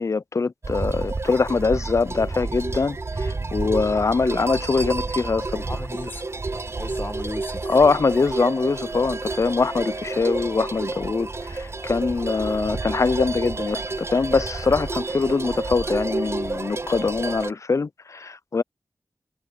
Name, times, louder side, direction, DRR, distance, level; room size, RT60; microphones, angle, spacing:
voice 1, 0.0-5.7 7.7-18.6, left 4 dB, 50° left, 0.4 m, -23 dB
sound 1, 0.6-17.5, right 3 dB, 40° right, 0.6 m, -30 dB
voice 2, 5.7-6.2 6.8-7.7, left 2 dB, 30° left, 1.7 m, -34 dB
wide cardioid pair, 60°, 7 cm